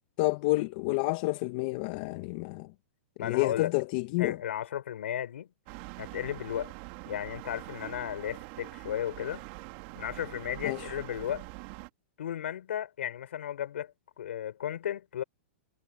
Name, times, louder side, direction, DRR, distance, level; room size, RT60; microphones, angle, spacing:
voice 1, 0.2-2.7 3.2-4.4 10.6-10.8, left 23 dB, 40° left, 0.8 m, -29 dB
voice 2, 3.2-3.7 4.2-5.5 6.0-6.7 7.1-9.5 10.0-11.5 12.2-15.2, left 10 dB, 75° left, 4.0 m, -34 dB
sound 1, 5.7-11.9, right 24 dB, 40° right, 2.2 m, -44 dB
hypercardioid pair, 155°, 7 cm